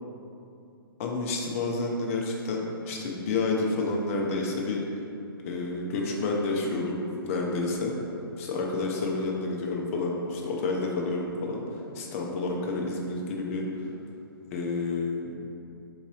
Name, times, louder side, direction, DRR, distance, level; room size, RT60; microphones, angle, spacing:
voice 1, 1.0-4.8 5.4-7.9 8.4-13.7 14.5-15.4, left 3 dB, 35° left, -1 dB, 0.5 m, -29 dB
3.8 x 2.6 x 3.1 m, 2.7 s
figure-of-eight pair, 125°, 13 cm